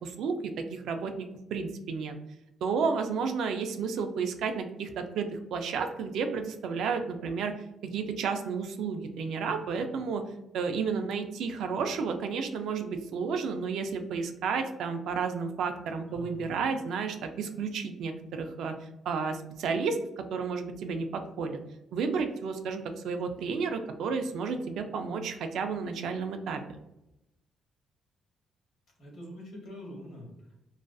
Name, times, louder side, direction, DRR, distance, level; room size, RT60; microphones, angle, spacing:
voice 1, 0.0-2.2 2.6-7.5 7.8-10.2 10.5-18.7 19.1-21.6 21.9-26.6, right 5 dB, 75° right, 7 dB, 0.3 m, -32 dB
voice 2, 16.1-16.6 29.0-30.5, left 1 dB, 65° left, -1 dB, 1.0 m, -45 dB
2.4 x 2.3 x 2.2 m, 0.88 s
cardioid pair, 90°, 0 cm